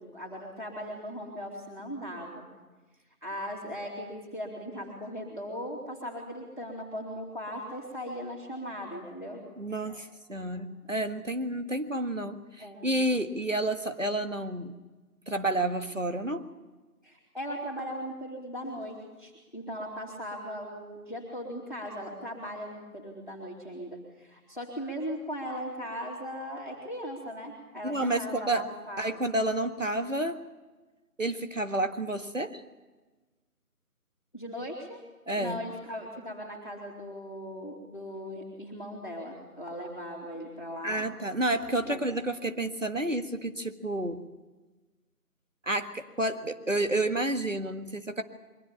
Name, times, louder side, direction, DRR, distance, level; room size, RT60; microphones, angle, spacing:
voice 1, 0.0-2.5 3.2-9.4 9.9-10.0 10.5-10.6 12.6-12.9 17.0-29.2 34.3-35.0 35.4-41.0 41.9-42.0, equal, 30° left, -2 dB, 2.8 m, -38 dB
voice 2, 9.6-14.7 15.3-16.5 27.8-28.7 29.0-30.4 31.2-32.6 35.3-35.6 40.8-44.2 45.6-48.2, right 1 dB, 55° right, 8 dB, 1.7 m, -30 dB
23.0 x 16.5 x 8.8 m, 1.2 s
figure-of-eight pair, 180°, 46 cm